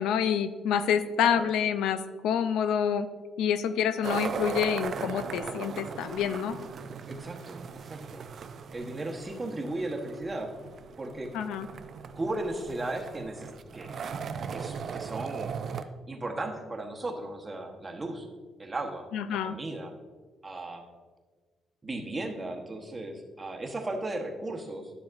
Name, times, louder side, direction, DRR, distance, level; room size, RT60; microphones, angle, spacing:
voice 1, 0.0-3.1 3.4-6.6 11.3-11.7 19.1-19.6, left 8 dB, 90° left, 11 dB, 0.4 m, -27 dB
sound 1, 4.0-15.8, right 6 dB, 55° right, 0.4 m, -38 dB
voice 2, 7.1-8.2 8.7-10.5 11.0-11.3 12.2-14.0 14.5-18.3 18.6-19.9 20.4-20.9 21.8-24.9, right 2 dB, 25° right, 2 dB, 1.1 m, -36 dB
10.5 x 7.0 x 2.6 m, 1.4 s
cardioid pair, 90°, 0 cm